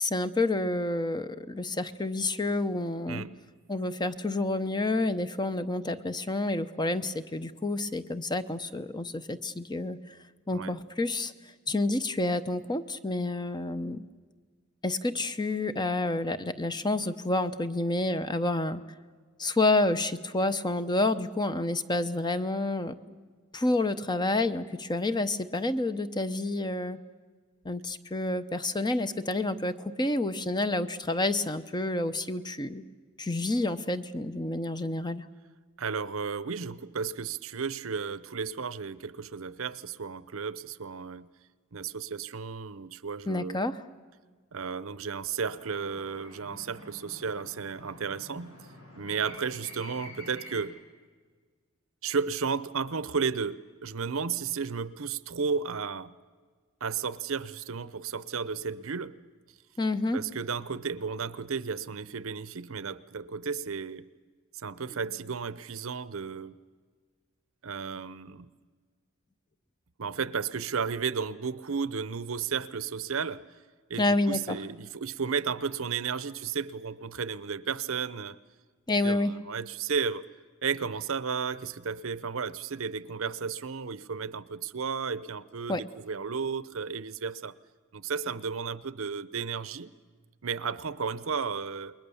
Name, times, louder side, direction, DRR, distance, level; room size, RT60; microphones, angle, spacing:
voice 1, 0.0-3.2 3.7-10.2 10.5-11.3 11.7-14.0 14.8-18.8 19.4-23.0 23.5-27.0 27.6-32.8 33.2-35.2 43.3-43.8 59.8-60.2 74.0-74.6 78.9-79.3 85.7-85.8, left 2 dB, 20° left, 11 dB, 0.8 m, -29 dB
voice 2, 35.8-41.3 41.7-43.6 44.5-48.6 49.0-50.7 52.0-56.1 56.8-59.2 60.1-64.1 64.5-66.6 67.6-68.5 70.0-73.4 73.9-78.4 79.0-80.2 80.6-87.5 87.9-89.9 90.4-91.9, right 5 dB, 65° right, 17 dB, 0.8 m, -33 dB
sound 1, 45.6-50.6, left 1 dB, 85° left, 7.7 m, -48 dB
28.5 x 21.5 x 7.0 m, 1.5 s
head